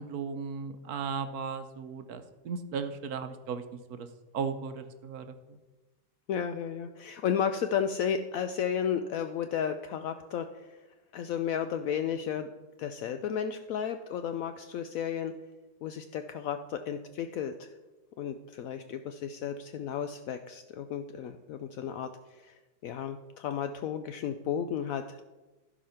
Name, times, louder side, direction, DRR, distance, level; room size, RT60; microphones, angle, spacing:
voice 1, 0.0-3.6 3.9-4.1 4.3-5.6, right 5 dB, 65° right, 9 dB, 1.1 m, -36 dB
voice 2, 6.3-10.8 11.1-12.5 12.8-15.3 15.8-17.7 18.2-25.2, left 8 dB, 75° left, 8 dB, 0.7 m, -33 dB
15.0 x 5.1 x 5.7 m, 1.2 s
omnidirectional pair, 2.0 m